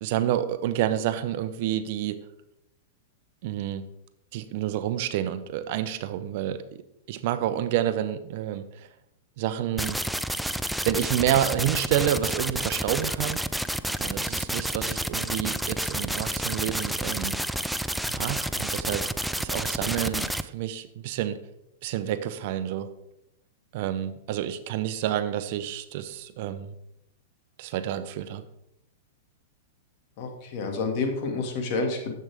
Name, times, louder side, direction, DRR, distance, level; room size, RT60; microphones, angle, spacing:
voice 1, 0.0-2.2 3.4-3.9 4.3-6.8 7.1-8.9 9.4-10.0 10.8-13.4 14.0-17.4 18.1-19.1 19.4-21.4 21.8-22.9 23.7-26.7 27.6-28.4, right 11 dB, 55° right, 12 dB, 0.7 m, -29 dB
sound 1, 9.8-20.4, right 1 dB, ahead, 0.3 m, -30 dB
voice 2, 30.2-32.1, left 3 dB, 50° left, 3 dB, 2.0 m, -29 dB
10.5 x 7.6 x 3.5 m, 0.82 s
hypercardioid pair, 135°, 0 cm